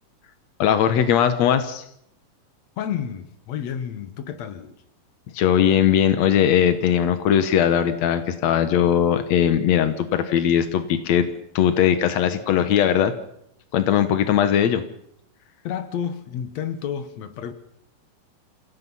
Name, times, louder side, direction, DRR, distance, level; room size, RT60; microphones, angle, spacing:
voice 1, 0.6-1.8 5.3-11.3 11.5-13.1 13.7-14.8, left 9 dB, 80° left, 1.5 m, -19 dB
voice 2, 2.8-4.7 15.6-17.5, left 8 dB, 65° left, 1.8 m, -30 dB
28.5 x 17.0 x 5.6 m
omnidirectional pair, 4.9 m